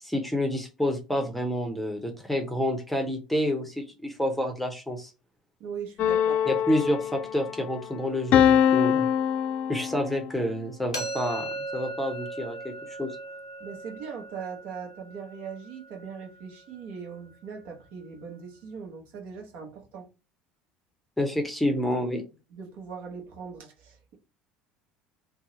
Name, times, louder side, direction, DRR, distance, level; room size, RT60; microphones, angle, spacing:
voice 1, 0.0-5.1 6.5-9.1 9.7-13.2 21.2-22.2, left 1 dB, 5° left, 0.7 m, -29 dB
voice 2, 5.6-6.4 13.6-20.1 22.5-24.2, right 6 dB, 60° right, 0.9 m, -40 dB
sound 1, 6.0-7.6 8.3-10.3, left 9 dB, 50° left, 0.3 m, -23 dB
sound 2, 10.9-16.8, right 2 dB, 90° left, 0.6 m, -38 dB
2.7 x 2.1 x 3.8 m
figure-of-eight pair, 65°, 3 cm